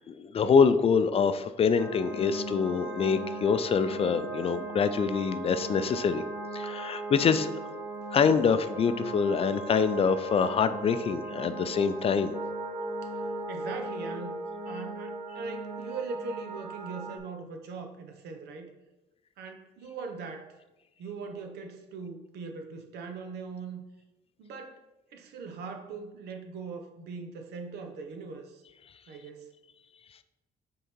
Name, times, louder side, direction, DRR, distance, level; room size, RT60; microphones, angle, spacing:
voice 1, 0.1-6.2 6.5-7.5 8.1-12.3, left 6 dB, 35° left, 11 dB, 0.4 m, -25 dB
sound 1, 1.7-17.2, right 2 dB, 15° right, 1.6 m, -38 dB
voice 2, 13.0-14.4 14.6-18.7 19.4-20.6 21.0-23.8 24.4-24.8 25.1-28.6 29.1-29.6, right 4 dB, 85° right, 5 dB, 0.9 m, -40 dB
6.4 x 3.8 x 4.4 m, 1.0 s
cardioid pair, 125°, 17 cm